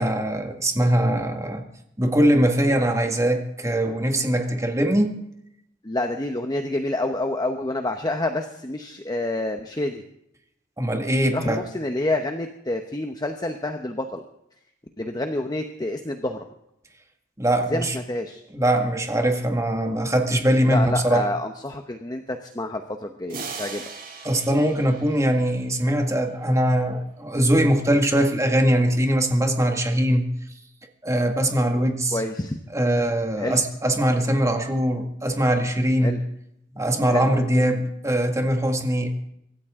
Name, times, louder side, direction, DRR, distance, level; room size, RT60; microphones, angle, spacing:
voice 1, 0.0-1.6 2.0-5.2 10.8-11.6 17.4-18.0 18.5-21.3 23.5-23.6 24.2-30.3 31.0-32.2 32.7-36.2 36.8-39.2, right 1 dB, 15° right, 1.9 m, -22 dB
voice 2, 5.8-10.0 11.3-14.2 15.0-16.4 17.7-18.4 20.7-23.8 32.1-32.6 33.4-33.6 36.0-36.2 37.1-37.3, left 2 dB, 20° left, 1.0 m, -28 dB
sound 1, 23.3-26.0, right 5 dB, 55° right, 4.2 m, -39 dB
24.5 x 13.5 x 3.7 m
head